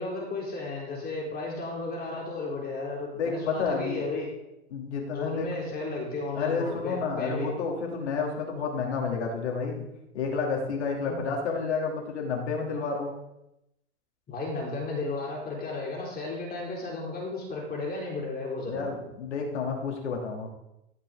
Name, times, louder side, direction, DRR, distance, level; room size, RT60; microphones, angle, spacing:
voice 1, 0.0-4.3 5.1-7.5 11.1-11.2 14.3-19.0, left 3 dB, 25° left, -3 dB, 3.9 m, -34 dB
voice 2, 3.2-4.0 4.7-5.5 6.3-9.8 10.1-13.1 18.6-20.5, left 5 dB, 75° left, 0 dB, 3.0 m, -30 dB
14.5 x 5.8 x 3.8 m, 0.87 s
hypercardioid pair, 100°, 34 cm